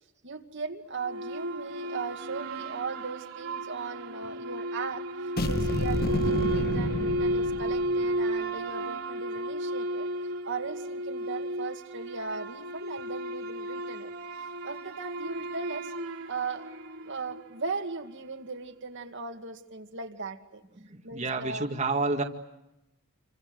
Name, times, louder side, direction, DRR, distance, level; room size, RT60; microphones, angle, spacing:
voice 1, 0.2-10.1 10.4-14.1 14.6-15.9 16.3-16.7 17.0-20.6 21.0-21.7, right 4 dB, 60° right, 4 dB, 2.3 m, -38 dB
sound 1, 1.0-17.6, right 1 dB, 75° right, 3.2 m, -33 dB
sound 2, 5.4-8.1, left 1 dB, 45° left, 1.3 m, -30 dB
voice 2, 20.8-22.2, right 3 dB, 35° right, 2 dB, 2.0 m, -29 dB
29.0 x 25.5 x 8.0 m, 0.93 s
head